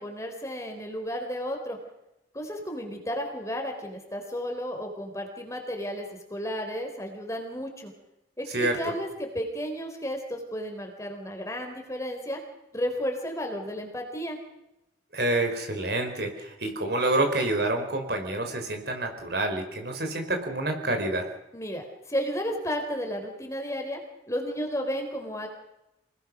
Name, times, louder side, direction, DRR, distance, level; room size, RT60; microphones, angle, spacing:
voice 1, 0.0-1.8 2.3-7.9 8.4-12.4 12.7-14.4 21.5-24.0 24.3-25.5, equal, 15° left, 3 dB, 4.2 m, -33 dB
voice 2, 8.5-8.9 15.1-21.3, right 2 dB, 55° right, 5 dB, 4.8 m, -28 dB
27.5 x 20.0 x 6.4 m, 0.90 s
head